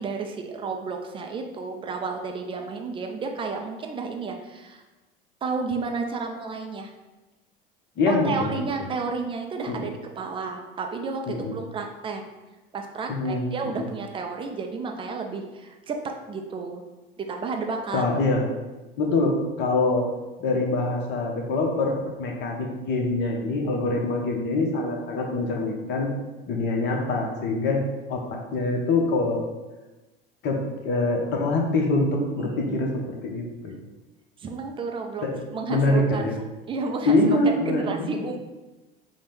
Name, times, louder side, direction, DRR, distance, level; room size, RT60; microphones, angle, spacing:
voice 1, 0.0-4.8 5.4-6.9 8.1-12.2 12.7-16.8 17.2-18.0 32.4-32.8 34.4-35.3 35.5-36.3 36.7-37.2 37.5-38.4, right 4 dB, 20° right, 3 dB, 0.3 m, -32 dB
voice 2, 8.0-8.5 8.8-8.9 9.7-9.9 11.3-11.5 13.1-13.5 13.8-13.9 17.9-18.4 19.0-20.1 20.4-21.9 22.2-26.1 26.5-27.8 28.1-29.5 30.4-30.6 30.8-33.7 35.2-35.4 35.7-36.3 37.1-38.2, left 2 dB, 40° left, 1 dB, 0.8 m, -24 dB
5.1 x 2.1 x 3.2 m, 1.1 s
figure-of-eight pair, 70°, 29 cm